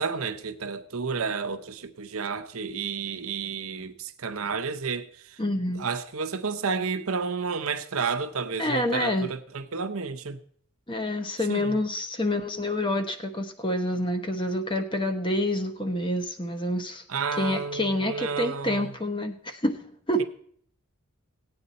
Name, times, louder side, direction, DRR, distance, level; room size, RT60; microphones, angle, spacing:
voice 1, 0.0-5.4 5.7-10.4 11.5-11.8 17.1-18.9, right 5 dB, 75° right, 0.8 m, -31 dB
voice 2, 5.4-5.9 8.6-9.3 10.9-17.0 17.3-20.2, left 1 dB, 20° left, 1.0 m, -27 dB
17.0 x 8.7 x 4.2 m
head